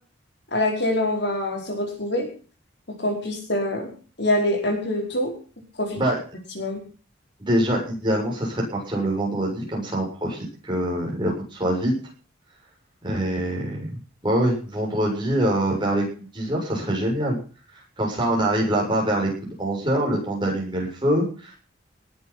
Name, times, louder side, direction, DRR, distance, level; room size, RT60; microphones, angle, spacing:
voice 1, 0.5-2.3 3.0-3.9 4.2-5.3 5.8-6.0 6.5-6.8, left 1 dB, 55° left, 2 dB, 4.9 m, -24 dB
voice 2, 7.5-12.0 13.0-17.4 18.0-21.6, right 1 dB, 25° right, -1 dB, 7.3 m, -24 dB
19.5 x 8.7 x 5.9 m, 0.39 s
head